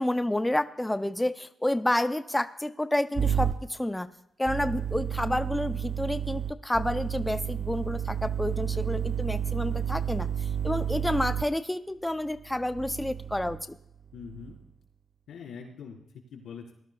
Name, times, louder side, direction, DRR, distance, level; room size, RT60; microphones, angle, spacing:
voice 1, 0.0-4.1 4.4-13.6, left 1 dB, 10° left, 11 dB, 0.4 m, -29 dB
sound 1, 3.2-3.5 4.5-11.4 12.5-13.7 14.2-14.6, right 9 dB, 55° right, 0.4 m, -31 dB
voice 2, 14.1-14.6 15.3-16.7, left 6 dB, 90° left, 0 dB, 3.8 m, -43 dB
19.5 x 12.5 x 2.3 m, 0.78 s
cardioid pair, 90°, 0 cm